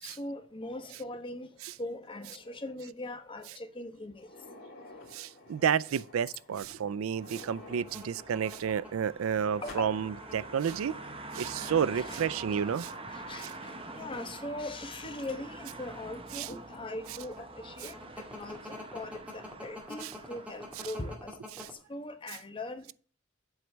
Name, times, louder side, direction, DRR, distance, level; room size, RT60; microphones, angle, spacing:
voice 1, 0.0-1.5 1.8-4.3 9.4-9.9 11.9-12.6 13.1-21.4 21.7-22.9, left 2 dB, 25° left, 1.0 m, -41 dB
sound 1, 4.1-14.9 15.2-15.3 16.1-16.2 16.7-16.8 18.2-18.4, left 2 dB, 50° left, 2.6 m, -52 dB
voice 2, 5.1-10.9 11.3-12.9 13.4-13.5 16.3-16.5 17.8-17.9 20.0-20.1 21.5-21.7, right 7 dB, 90° right, 0.4 m, -31 dB
sound 2, 7.2-21.2, right 2 dB, 25° right, 1.0 m, -46 dB
sound 3, 7.5-10.9 11.7-12.2 12.5-12.7 13.4-15.1 15.5-21.7, left 2 dB, 5° right, 2.0 m, -47 dB
8.1 x 4.5 x 6.3 m
head